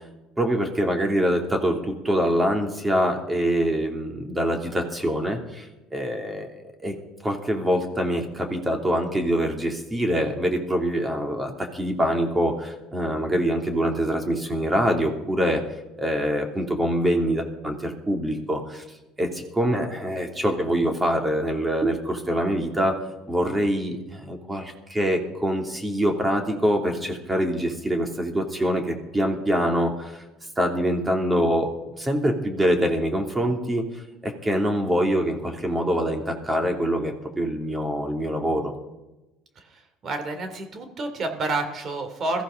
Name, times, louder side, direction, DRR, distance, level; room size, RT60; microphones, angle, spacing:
voice 1, 0.4-6.5 6.8-6.9 7.2-15.6 16.0-18.8 19.2-22.9 23.3-30.2 30.6-31.7 32.0-33.8 34.2-38.7, equal, 15° right, 3 dB, 2.8 m, -24 dB
voice 2, 40.0-42.4, right 2 dB, 45° right, 6 dB, 2.9 m, -29 dB
21.5 x 15.0 x 3.8 m, 1.0 s
supercardioid pair, 100°, 0 cm